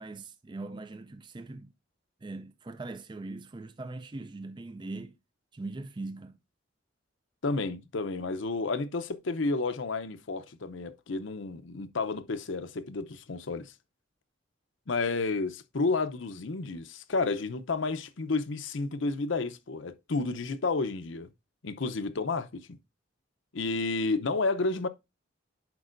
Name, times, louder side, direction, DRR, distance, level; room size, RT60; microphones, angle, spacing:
voice 1, 0.0-1.7 2.2-5.1 5.5-6.4, right 2 dB, 25° right, 0.4 m, -41 dB
voice 2, 7.4-13.7 14.9-21.3 21.6-22.8 23.5-24.9, left 3 dB, 70° left, 0.7 m, -31 dB
10.5 x 4.7 x 2.5 m
head